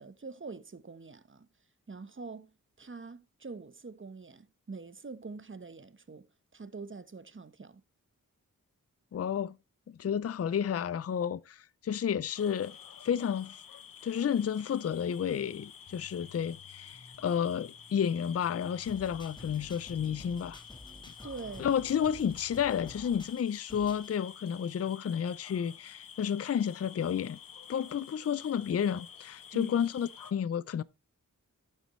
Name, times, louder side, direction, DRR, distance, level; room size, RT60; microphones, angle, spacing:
voice 1, 0.0-1.5 1.9-6.3 6.5-7.8 21.2-21.7 29.5-29.7, right 4 dB, 35° right, 1.0 m, -44 dB
voice 2, 9.1-9.6 9.9-12.8 13.0-13.6 14.0-20.6 21.6-27.4 27.7-30.8, left 8 dB, 45° left, 0.4 m, -31 dB
sound 1, 12.3-30.3, left 8 dB, 85° left, 0.8 m, -50 dB
sound 2, 15.9-22.7, left 3 dB, 65° left, 3.3 m, -57 dB
sound 3, 18.9-24.2, left 1 dB, 15° left, 1.6 m, -51 dB
11.5 x 8.3 x 3.1 m
wide cardioid pair, 70°, 33 cm